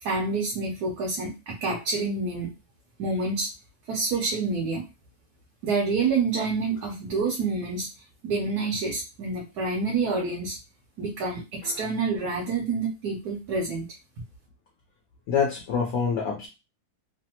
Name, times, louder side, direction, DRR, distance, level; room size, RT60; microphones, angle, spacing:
voice 1, 0.0-2.5 3.0-3.5 3.9-4.8 5.6-7.9 8.2-10.6 11.0-13.9, right 4 dB, 80° right, -2 dB, 1.3 m, -27 dB
voice 2, 15.3-16.5, left 6 dB, 60° left, 0 dB, 0.8 m, -26 dB
3.2 x 2.0 x 2.8 m, 0.28 s
omnidirectional pair, 1.7 m